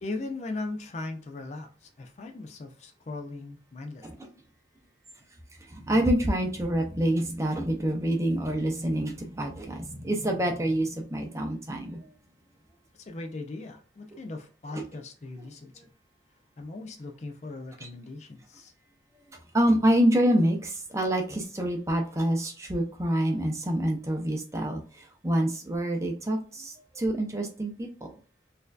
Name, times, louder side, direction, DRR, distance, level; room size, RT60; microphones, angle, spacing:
voice 1, 0.0-4.1 12.9-15.7 16.6-18.7 23.3-23.4, left 2 dB, 35° left, 0.4 m, -38 dB
voice 2, 5.7-12.1 14.7-14.8 17.8-17.9 19.5-27.9, right 1 dB, 15° right, 0.6 m, -27 dB
4.2 x 2.6 x 2.3 m
head